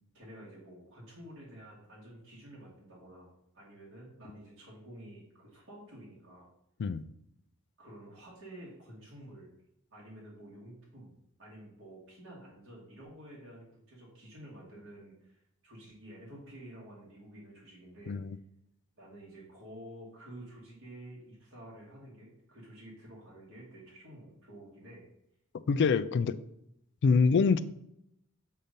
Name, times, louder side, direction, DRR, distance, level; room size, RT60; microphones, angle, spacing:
voice 1, 0.1-6.5 7.8-9.5 9.9-11.1 11.4-18.4 19.0-25.0, right 1 dB, 65° right, 2.0 m, -50 dB
voice 2, 18.1-18.4 25.7-26.4 27.0-27.6, left 5 dB, 55° left, 0.4 m, -25 dB
7.5 x 2.8 x 5.2 m
head